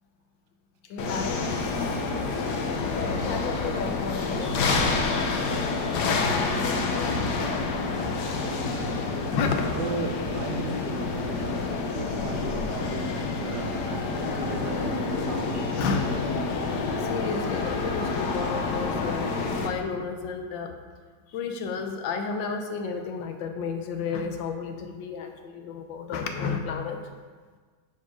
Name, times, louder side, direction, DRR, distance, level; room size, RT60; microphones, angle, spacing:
voice 1, 0.9-1.4 2.9-7.6 9.3-9.8 15.8-16.1 17.0-19.3 19.6-20.7 21.3-27.0, left 5 dB, 85° left, 5 dB, 1.5 m, -32 dB
sound 1, 1.0-19.7, left 3 dB, 65° left, 1.4 m, -28 dB
voice 2, 2.1-2.4 4.4-4.5 8.4-9.1 9.8-15.7, right 4 dB, 70° right, 4 dB, 1.3 m, -36 dB
9.8 x 4.6 x 4.7 m, 1.5 s
omnidirectional pair, 2.0 m